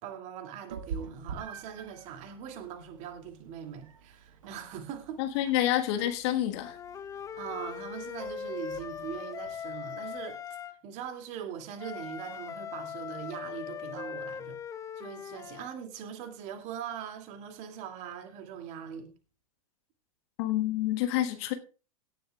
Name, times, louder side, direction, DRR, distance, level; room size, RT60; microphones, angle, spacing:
voice 1, 0.0-5.2 7.4-10.4 10.8-14.6 15.0-19.1, right 8 dB, 40° right, 2.5 m, -41 dB
Meow, 0.7-10.4, right 6 dB, 65° right, 1.6 m, -47 dB
voice 2, 5.2-6.8 20.4-21.5, left 13 dB, 45° left, 1.5 m, -28 dB
Wind instrument woodwind instrument, 6.6-10.8 11.8-15.7, left 7 dB, 15° left, 0.7 m, -40 dB
17.0 x 11.0 x 2.3 m
figure-of-eight pair, 95°, 19 cm